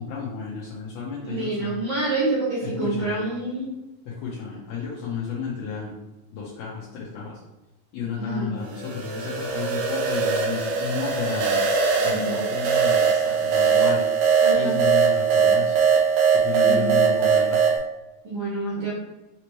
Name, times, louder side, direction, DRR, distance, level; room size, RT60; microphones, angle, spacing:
voice 1, 0.0-1.8 2.6-3.2 4.1-5.9 6.3-7.3 7.9-11.6 12.0-14.0 14.5-15.8 16.3-17.6, left 5 dB, 75° left, -8 dB, 1.7 m, -32 dB
voice 2, 1.2-3.7 8.1-8.5 12.0-12.3 14.4-14.7 16.6-17.1 18.2-18.9, right 2 dB, 55° right, -8 dB, 1.4 m, -27 dB
sound 1, 8.7-17.8, right 6 dB, 85° right, 1.2 m, -21 dB
5.2 x 2.8 x 3.0 m, 1.0 s
omnidirectional pair, 3.5 m